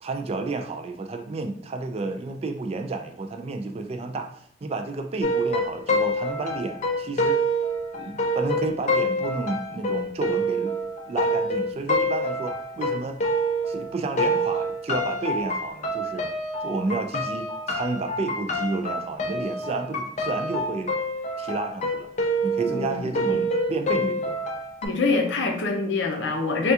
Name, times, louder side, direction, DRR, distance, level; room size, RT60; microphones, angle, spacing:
voice 1, 0.0-7.4 7.9-10.8 11.1-13.2 13.7-16.2 16.6-20.9 21.4-22.1 22.4-24.4, right 3 dB, 35° right, 6 dB, 0.3 m, -31 dB
sound 1, 5.2-13.9 14.2-24.9, equal, 40° left, 0.4 m, -27 dB
voice 2, 22.7-23.4 24.8-26.7, left 3 dB, 85° left, 1 dB, 0.6 m, -25 dB
3.3 x 2.3 x 2.7 m, 0.67 s
head